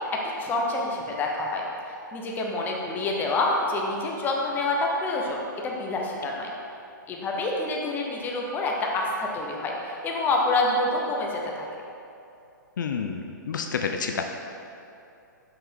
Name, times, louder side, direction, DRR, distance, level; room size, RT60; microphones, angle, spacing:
voice 1, 0.1-1.6 2.1-6.5 7.1-11.6, left 2 dB, 15° left, -1 dB, 0.8 m, -27 dB
voice 2, 12.8-14.2, left 6 dB, 70° left, 4 dB, 0.5 m, -29 dB
5.7 x 5.4 x 3.6 m, 2.7 s
hypercardioid pair, 130°, 11 cm